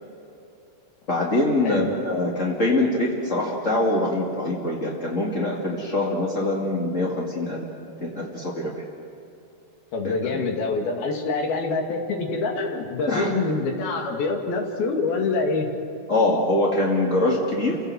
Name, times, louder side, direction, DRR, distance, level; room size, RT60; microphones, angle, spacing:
voice 1, 1.1-7.7 8.0-8.7 10.0-10.1 13.1-13.3 16.1-17.8, left 2 dB, 30° left, -4 dB, 1.5 m, -23 dB
voice 2, 9.9-15.7, left 3 dB, 65° left, 2 dB, 3.9 m, -25 dB
29.5 x 18.0 x 7.7 m, 2.7 s
omnidirectional pair, 4.9 m